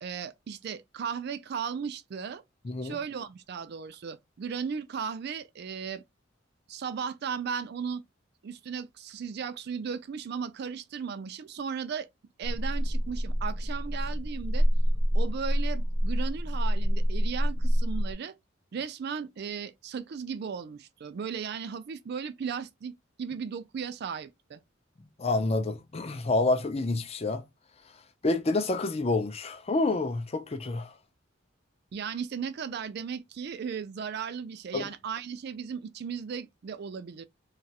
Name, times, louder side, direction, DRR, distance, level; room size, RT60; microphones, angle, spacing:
voice 1, 0.0-2.4 2.8-6.0 6.7-8.0 8.4-12.1 12.4-14.7 15.1-18.3 18.7-24.6 31.9-37.2, right 6 dB, 55° right, 0.4 m, -36 dB
voice 2, 2.6-3.0 25.2-27.4 28.2-30.9 34.7-34.9, left 2 dB, 30° left, 0.5 m, -28 dB
sound 1, 12.4-18.1, equal, 75° left, 0.9 m, -27 dB
2.9 x 2.4 x 2.8 m
head